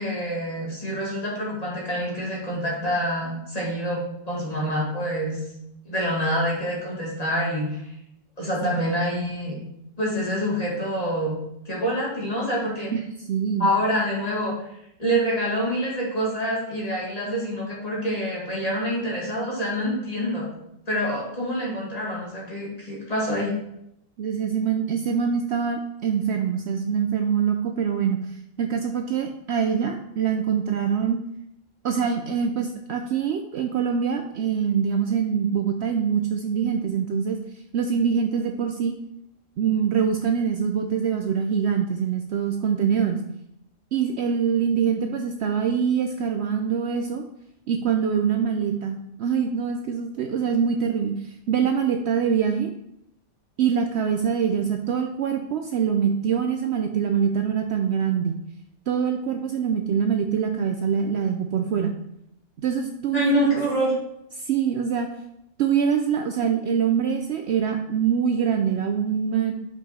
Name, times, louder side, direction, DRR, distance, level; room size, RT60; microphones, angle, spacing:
voice 1, 0.0-5.4 5.9-7.9 8.4-9.6 10.0-11.4 11.7-12.9 13.6-14.5 15.0-20.5 20.9-23.5 63.1-63.9, equal, 30° left, -5 dB, 2.1 m, -26 dB
voice 2, 13.3-13.7 24.2-31.2 31.8-37.4 37.7-38.9 39.6-43.2 43.9-47.2 47.7-52.7 53.6-58.4 58.9-61.9 62.6-63.5 64.4-65.1 65.6-69.5, right 7 dB, 65° right, 5 dB, 0.7 m, -24 dB
5.3 x 5.2 x 4.3 m, 0.79 s
omnidirectional pair, 1.3 m